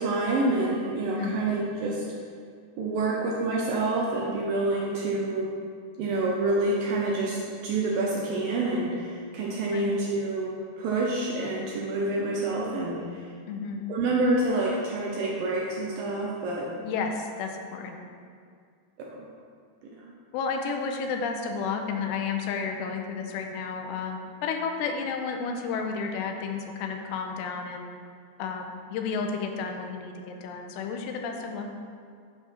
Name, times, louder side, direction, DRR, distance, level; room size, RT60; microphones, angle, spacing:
voice 1, 0.0-2.0 2.8-5.5 6.0-13.3 13.9-16.7 19.1-19.3 20.0-20.1, right 2 dB, 75° right, -3 dB, 2.2 m, -27 dB
voice 2, 13.5-13.8 16.8-18.0 20.3-27.9 28.4-31.7, left 5 dB, 90° left, 4 dB, 2.9 m, -32 dB
10.0 x 4.6 x 5.7 m, 2.2 s
omnidirectional pair, 4.9 m